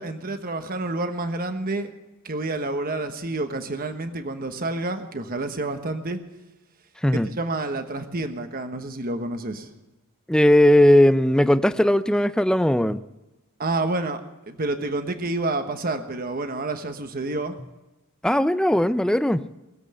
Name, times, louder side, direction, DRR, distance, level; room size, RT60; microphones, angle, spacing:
voice 1, 0.0-1.9 2.2-6.2 7.3-9.7 13.6-14.2 14.5-17.6, right 2 dB, 40° right, 7 dB, 1.2 m, -29 dB
voice 2, 10.3-13.0 18.2-19.4, left 1 dB, 5° left, 11 dB, 0.5 m, -18 dB
20.5 x 8.0 x 7.9 m, 1.0 s
head